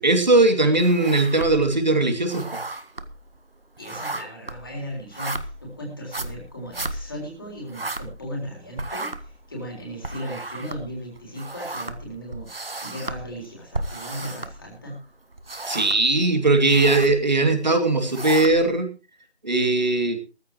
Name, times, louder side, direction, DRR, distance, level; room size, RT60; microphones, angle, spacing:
voice 1, 0.0-2.4 15.7-18.9 19.4-20.2, right 2 dB, 40° right, 6 dB, 2.8 m, -19 dB
sound 1, 0.8-1.8 2.1-8.5 8.7-15.0 15.3-16.1 16.5-17.2 17.8-18.8, right 2 dB, 60° right, 1.5 m, -34 dB
voice 2, 3.8-15.0, equal, 20° left, -1 dB, 3.7 m, -36 dB
17.5 x 14.5 x 3.1 m, 0.32 s
figure-of-eight pair, 175°, 33 cm